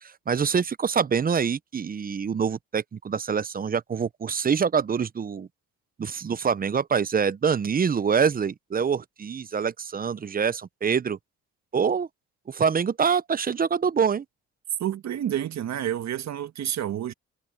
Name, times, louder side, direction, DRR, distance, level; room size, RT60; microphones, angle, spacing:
voice 1, 0.0-5.5 6.0-11.2 11.7-12.1 12.5-14.2, right 6 dB, 30° right, 0.6 m, -25 dB
voice 2, 14.8-17.1, right 11 dB, 65° right, 1.5 m, -29 dB
cardioid pair, 90°, 30 cm